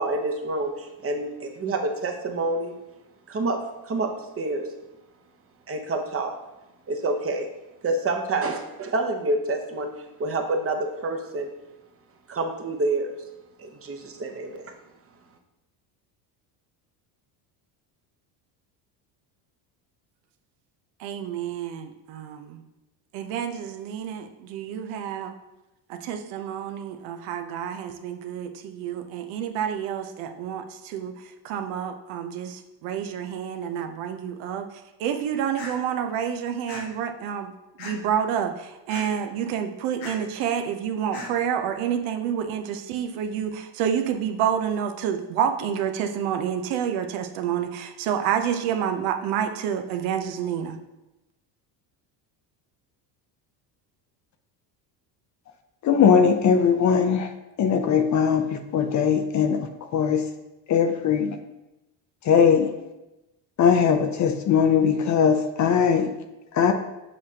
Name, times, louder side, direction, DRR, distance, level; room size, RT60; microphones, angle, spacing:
voice 1, 0.0-2.7 3.3-3.6 3.9-4.1 4.4-4.7 5.7-6.3 6.9-7.5 7.8-9.9 10.2-11.5 12.3-13.1 13.6-14.7, right 2 dB, 30° right, 4 dB, 0.9 m, -27 dB
voice 2, 21.0-22.6 23.1-25.3 25.9-31.1 31.4-34.7 35.0-37.5 37.8-50.8, right 8 dB, 75° right, 6 dB, 0.8 m, -28 dB
sound 1, 35.6-35.7 36.7-36.8 37.8-38.1 38.9-39.0 40.0-40.2 41.1-41.3, left 3 dB, 85° left, 1.7 m, -36 dB
voice 3, 55.8-57.3 57.6-58.5 58.7-59.6 59.9-60.2 60.7-61.3 62.3-62.7 63.6-66.1 66.5-66.7, left 7 dB, 35° left, 7 dB, 0.5 m, -20 dB
6.9 x 4.9 x 2.8 m, 0.97 s
supercardioid pair, 100°, 48 cm